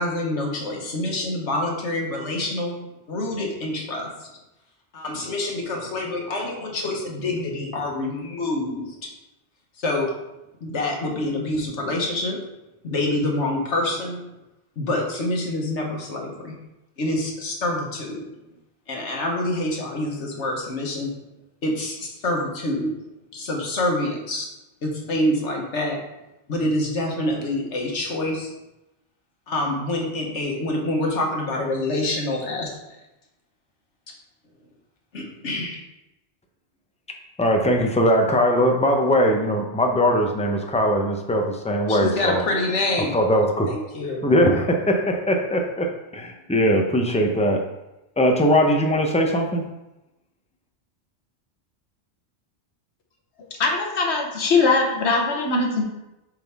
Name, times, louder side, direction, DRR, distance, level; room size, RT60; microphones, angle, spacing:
voice 1, 0.0-2.8 3.1-4.3 4.9-9.1 9.8-10.1 10.6-12.4 12.8-14.2 14.8-16.6 17.0-18.3 18.9-21.1 21.6-23.0 23.3-24.5 24.8-26.0 26.5-28.5 29.5-33.0 35.1-35.8 41.9-43.2 43.7-44.3, left 1 dB, 85° left, 0 dB, 1.5 m, -26 dB
voice 2, 37.4-42.4 43.1-43.7 44.2-47.6 48.2-49.6, equal, 10° left, 2 dB, 0.5 m, -20 dB
voice 3, 53.6-55.8, left 3 dB, 70° left, 1 dB, 1.3 m, -21 dB
7.3 x 4.0 x 3.5 m, 0.95 s
omnidirectional pair, 1.2 m